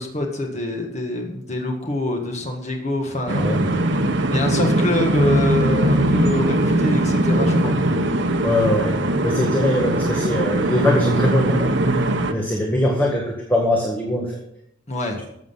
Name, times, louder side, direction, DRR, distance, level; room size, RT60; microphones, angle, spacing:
voice 1, 0.0-3.5 4.3-7.8 14.9-15.2, left 1 dB, 35° left, 1 dB, 1.6 m, -25 dB
sound 1, 3.3-12.3, right 1 dB, 60° right, 1.0 m, -20 dB
voice 2, 3.4-3.7 8.4-9.0 9.2-11.7 12.3-14.4, left 1 dB, 10° left, -1 dB, 1.7 m, -21 dB
13.5 x 7.8 x 5.7 m, 0.75 s
head